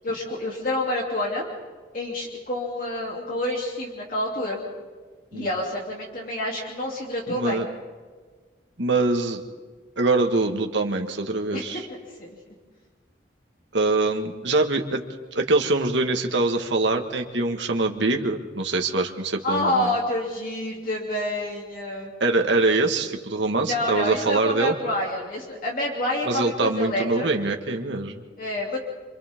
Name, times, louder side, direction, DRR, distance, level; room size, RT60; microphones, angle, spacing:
voice 1, 0.0-1.4 1.9-4.6 5.3-7.6 11.5-11.7 12.2-12.4 19.4-22.1 23.6-27.3 28.4-28.8, left 1 dB, 50° left, -2 dB, 3.1 m, -28 dB
voice 2, 7.3-7.7 8.8-9.4 10.0-11.9 13.7-15.0 15.3-19.9 22.2-24.8 26.2-28.2, right 2 dB, 80° right, 3 dB, 1.7 m, -24 dB
27.5 x 26.0 x 3.7 m, 1.5 s
head